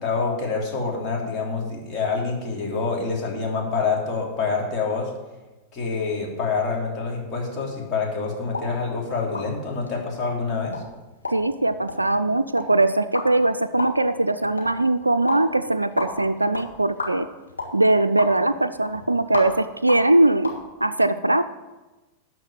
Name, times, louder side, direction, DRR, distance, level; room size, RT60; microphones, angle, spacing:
voice 1, 0.0-5.1 5.7-10.7, left 4 dB, 30° left, -2 dB, 3.1 m, -26 dB
sound 1, 8.4-20.6, left 3 dB, 80° left, 1.8 m, -35 dB
voice 2, 11.3-17.3 17.7-20.5 20.8-21.4, right 2 dB, 85° right, 9 dB, 0.4 m, -21 dB
12.0 x 4.6 x 7.1 m, 1.1 s
figure-of-eight pair, 90°, 0 cm